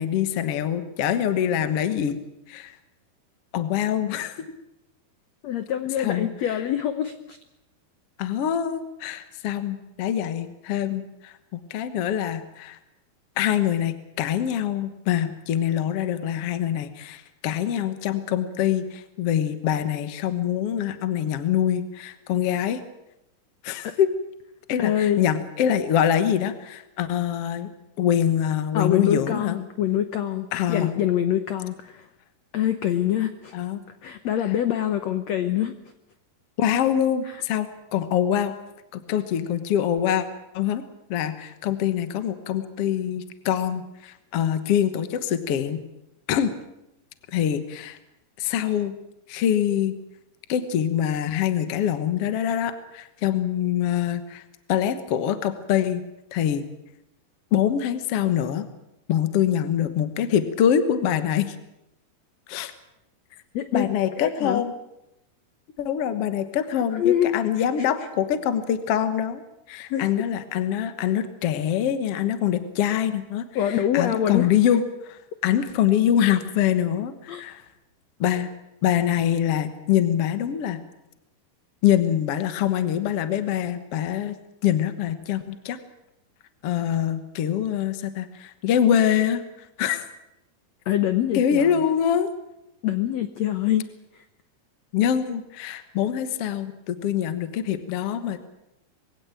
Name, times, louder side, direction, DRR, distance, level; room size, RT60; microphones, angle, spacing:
voice 1, 0.0-2.2 2.5-2.7 3.5-4.4 6.0-6.6 8.2-12.8 13.4-22.8 23.6-24.1 24.7-27.7 28.0-29.6 30.5-31.0 33.5-33.8 36.6-38.5 38.9-40.2 40.5-40.8 41.1-45.8 46.3-46.5 47.3-48.0 48.4-49.0 49.3-50.0 50.5-54.4 54.7-56.0 56.3-56.6 57.5-58.7 59.1-61.5 62.5-62.7 63.7-64.7 65.8-69.4 69.7-77.6 78.2-78.5 78.8-80.8 81.8-84.4 84.6-85.8 86.6-89.4 89.8-90.0 91.3-92.3 94.9-98.4, left 9 dB, 65° left, 10 dB, 1.5 m, -24 dB
voice 2, 5.4-7.4 23.8-23.9 24.8-25.2 28.7-32.1 32.5-33.5 34.0-35.7 37.3-37.4 63.5-63.9 64.2-64.6 66.9-67.4 67.8-67.9 69.9-70.1 73.5-74.5 77.3-77.4 90.9-91.8 92.8-93.9 94.1-94.2, left 11 dB, 80° left, 10 dB, 1.5 m, -25 dB
22.5 x 16.5 x 9.0 m, 0.86 s
omnidirectional pair, 4.5 m